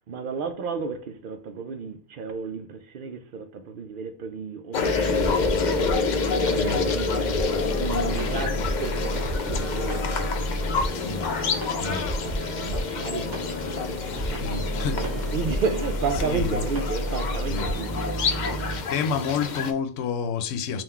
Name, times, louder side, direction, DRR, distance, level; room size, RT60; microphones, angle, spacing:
voice 1, 0.1-7.3 7.8-11.1 11.7-18.2 18.6-18.8, right 5 dB, 60° right, 0.6 m, -33 dB
sound 1, 4.7-19.7, left 4 dB, 55° left, 0.5 m, -28 dB
sound 2, 4.8-18.8, equal, 20° right, 0.8 m, -31 dB
voice 2, 6.5-6.8 10.9-11.3 11.8-12.0 14.4-15.1 16.1-16.7 17.4-17.7 18.9-20.8, left 5 dB, 80° left, 0.9 m, -29 dB
3.8 x 2.4 x 4.3 m
omnidirectional pair, 1.3 m